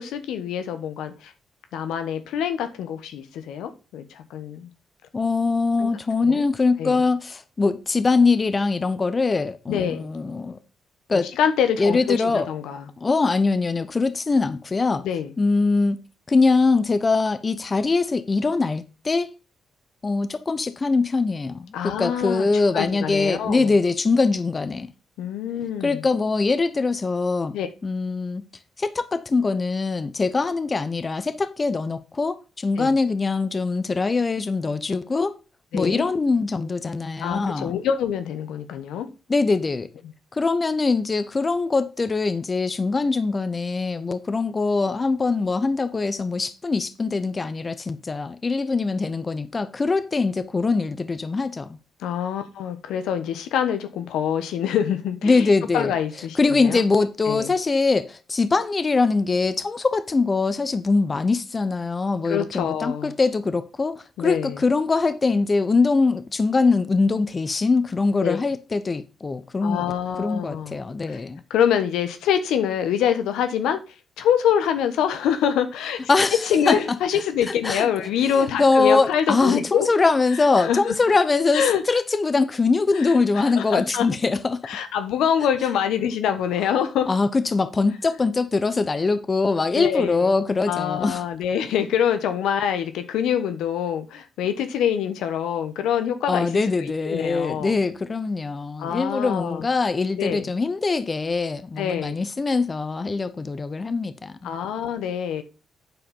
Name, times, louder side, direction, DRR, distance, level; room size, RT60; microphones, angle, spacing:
voice 1, 0.0-1.3 1.7-4.7 5.8-5.9 6.3-6.4 6.8-7.1 9.7-10.1 11.4-12.8 15.0-15.3 21.7-22.5 22.7-23.7 25.2-26.0 27.5-27.7 32.8-32.9 35.7-36.1 37.2-39.1 52.0-56.8 57.3-57.5 62.3-63.1 64.2-64.6 68.2-68.4 69.6-70.7 71.1-71.2 71.5-73.8 74.2-76.0 76.5-79.9 80.6-81.0 81.5-81.8 82.9-84.1 84.6-87.1 89.7-90.3 90.7-97.7 98.8-99.7 100.2-100.5 101.8-102.2 104.4-105.4, left 8 dB, 85° left, 1.1 m, -25 dB
voice 2, 5.1-10.6 11.1-11.3 11.8-12.5 13.0-15.0 15.4-16.0 16.3-19.3 20.0-24.9 25.8-27.5 27.8-28.4 28.8-35.3 35.7-37.7 39.3-39.9 40.3-51.8 55.2-55.9 56.3-71.4 76.1-77.0 77.6-77.9 78.3-84.6 87.1-91.2 96.3-104.5, left 3 dB, 35° left, 0.9 m, -22 dB
9.1 x 4.7 x 5.5 m
cardioid pair, 70°, 0 cm